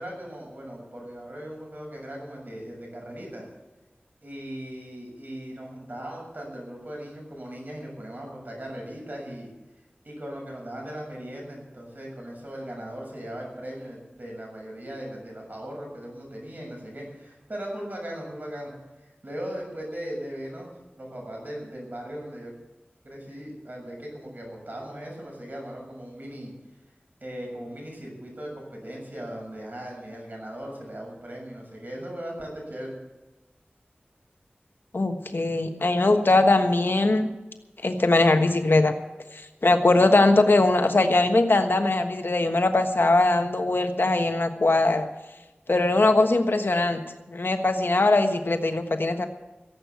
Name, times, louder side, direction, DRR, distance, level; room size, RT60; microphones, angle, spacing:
voice 1, 0.0-3.5 4.2-9.5 10.0-18.7 19.0-22.5 23.0-26.5 27.2-32.9, equal, 50° right, -1 dB, 6.8 m, -38 dB
voice 2, 34.9-37.3 37.8-38.9 39.6-45.1 45.7-47.0 47.3-49.3, left 2 dB, 65° left, 6 dB, 1.3 m, -21 dB
16.5 x 8.3 x 8.1 m, 1.1 s
wide cardioid pair, 55°, 4 cm